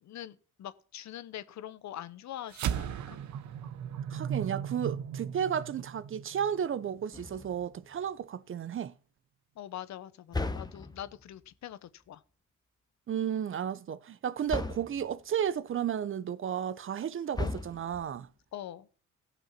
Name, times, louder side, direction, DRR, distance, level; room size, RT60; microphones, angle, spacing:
voice 1, 0.0-3.2 9.6-12.2 18.5-18.9, left 12 dB, 65° left, 0.8 m, -43 dB
sound 1, 2.5-7.1, right 9 dB, 70° right, 0.9 m, -36 dB
voice 2, 4.1-8.9 13.1-18.3, right 8 dB, 45° right, 0.6 m, -33 dB
sound 2, 7.1-7.8 10.3-11.2 14.5-15.1 17.3-18.2, left 2 dB, 15° left, 1.0 m, -36 dB
15.0 x 6.1 x 5.8 m
cardioid pair, 90°, 30 cm